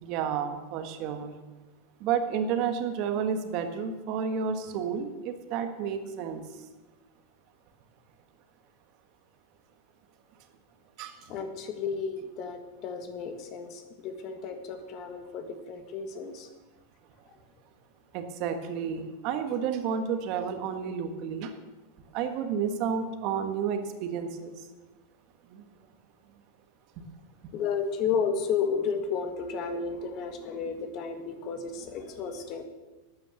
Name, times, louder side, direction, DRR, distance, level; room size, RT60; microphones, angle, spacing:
voice 1, 0.0-1.3 2.0-6.4 11.0-11.3 18.1-21.5 22.1-24.7 25.5-25.6, right 7 dB, 40° right, 7 dB, 1.5 m, -31 dB
voice 2, 11.3-16.5 27.5-32.6, left 6 dB, 35° left, 7 dB, 1.7 m, -32 dB
12.5 x 9.7 x 7.1 m, 1.2 s
supercardioid pair, 160°, 0 cm